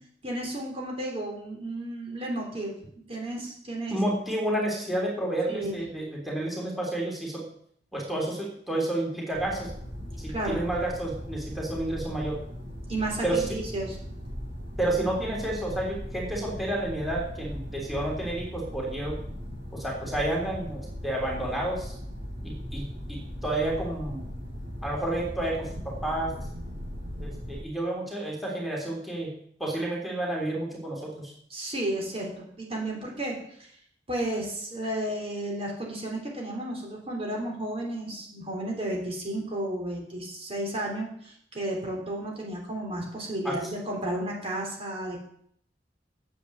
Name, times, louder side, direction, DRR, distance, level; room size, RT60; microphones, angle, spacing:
voice 1, 0.2-2.7 3.1-4.0 5.5-5.7 10.3-10.6 12.9-14.0 31.5-33.7 34.1-45.2, right 1 dB, 35° right, -1 dB, 3.4 m, -33 dB
voice 2, 3.9-7.5 7.9-9.7 10.2-12.4 13.2-13.5 14.8-19.2 19.7-21.9 22.4-24.3 24.8-26.3 27.2-29.3 29.6-31.3 43.4-43.6, right 1 dB, ahead, -3 dB, 3.5 m, -30 dB
sound 1, 9.3-27.6, equal, 70° right, 5.8 m, -38 dB
10.0 x 8.3 x 7.9 m, 0.66 s
head